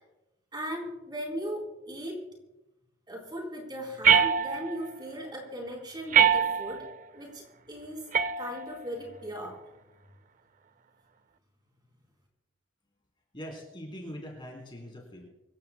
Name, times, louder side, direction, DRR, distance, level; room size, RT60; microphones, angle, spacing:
voice 1, 0.5-2.2 3.1-6.9 7.1-8.1 8.4-9.6, equal, 20° right, 0 dB, 3.8 m, -38 dB
sound 1, 4.0-4.9 6.1-6.9 8.1-8.9, right 7 dB, 35° right, 0.4 m, -24 dB
voice 2, 13.3-15.3, equal, 25° left, 0 dB, 3.5 m, -42 dB
25.5 x 15.5 x 2.2 m, 0.97 s
head